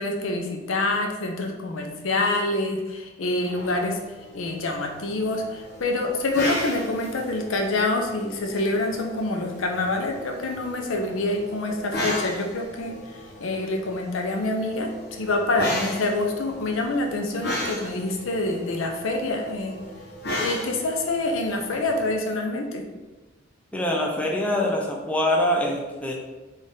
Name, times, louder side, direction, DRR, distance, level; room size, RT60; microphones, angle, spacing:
voice 1, 0.0-4.0 4.3-19.8 20.4-22.8, left 2 dB, 80° left, 2 dB, 0.5 m, -26 dB
sound 1, 3.5-22.1, left 1 dB, 55° left, 1.0 m, -36 dB
voice 2, 23.7-26.1, left 1 dB, 5° left, -1 dB, 0.5 m, -24 dB
4.0 x 2.5 x 3.6 m, 1.2 s
head